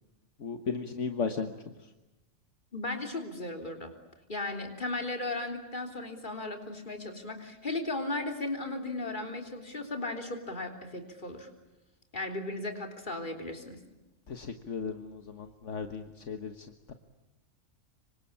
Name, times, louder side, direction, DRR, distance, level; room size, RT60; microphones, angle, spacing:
voice 1, 0.4-1.5 14.3-16.9, left 5 dB, 70° left, 7 dB, 1.7 m, -36 dB
voice 2, 2.7-3.9 4.3-11.5 12.1-13.8, left 2 dB, 40° left, 5 dB, 3.8 m, -36 dB
26.5 x 25.0 x 8.5 m, 1.0 s
omnidirectional pair, 1.3 m